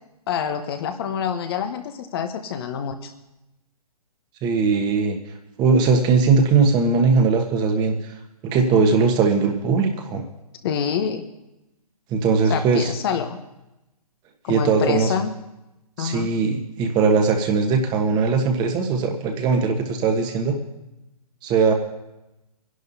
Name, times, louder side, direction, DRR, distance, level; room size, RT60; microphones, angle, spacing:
voice 1, 0.3-3.1 10.6-11.2 12.5-13.4 14.4-15.3 16.0-16.3, left 7 dB, 40° left, 7 dB, 1.1 m, -26 dB
voice 2, 4.4-5.2 5.6-7.9 8.4-10.2 12.1-12.9 14.5-15.1 16.0-20.6 21.4-21.7, right 4 dB, 20° right, 4 dB, 1.4 m, -19 dB
26.5 x 11.0 x 2.8 m, 0.94 s
figure-of-eight pair, 130°, 19 cm